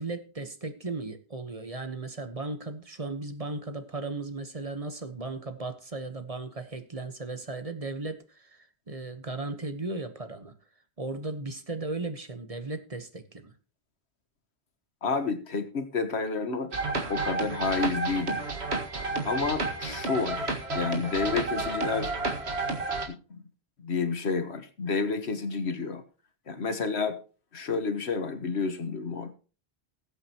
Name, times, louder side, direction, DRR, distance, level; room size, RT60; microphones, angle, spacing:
voice 1, 0.0-10.6 11.0-13.5, right 2 dB, 35° right, 8 dB, 1.2 m, -36 dB
voice 2, 15.0-16.7 17.1-18.4 19.2-22.1 23.1-23.4 23.8-26.0 26.5-27.2 27.5-29.3, left 4 dB, 80° left, 9 dB, 1.6 m, -30 dB
sound 1, 16.7-23.1, right 3 dB, 85° right, 2.0 m, -31 dB
19.5 x 8.1 x 3.0 m, 0.36 s
omnidirectional pair, 1.1 m